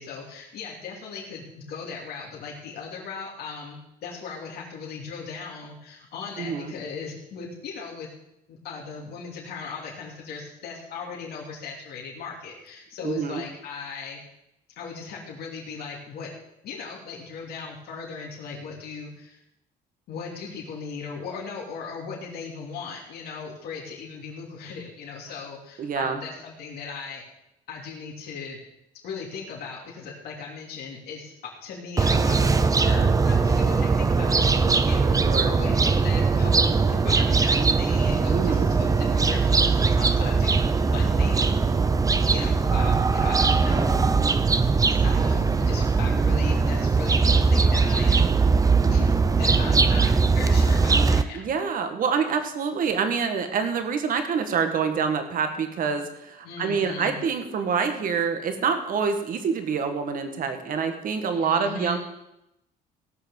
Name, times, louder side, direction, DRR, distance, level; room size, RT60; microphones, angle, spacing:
voice 1, 0.0-8.1 8.5-14.2 14.8-16.3 16.6-19.4 20.1-27.2 27.7-28.6 29.0-40.6 40.9-44.1 45.0-48.3 48.9-51.4 56.4-57.2 61.3-62.0, left 5 dB, 70° left, -3 dB, 3.0 m, -38 dB
voice 2, 6.4-6.7 13.0-13.4 25.8-26.2 35.3-35.6 38.3-38.7 51.3-62.0, right 6 dB, 55° right, 7 dB, 1.9 m, -26 dB
sound 1, 32.0-51.2, right 4 dB, 20° right, 0.7 m, -20 dB
17.0 x 6.0 x 7.3 m, 0.86 s
cardioid pair, 110°, 17 cm